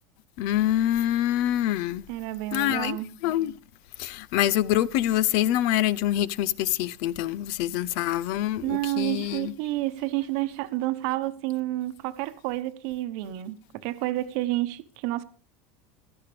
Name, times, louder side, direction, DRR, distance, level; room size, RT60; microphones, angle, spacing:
voice 1, 0.4-2.1 2.5-3.6 4.0-9.5, left 12 dB, 50° left, 0.5 m, -25 dB
voice 2, 2.1-3.1 8.6-15.2, right 17 dB, 55° right, 1.0 m, -30 dB
16.5 x 13.0 x 3.4 m
supercardioid pair, 160°, 7 cm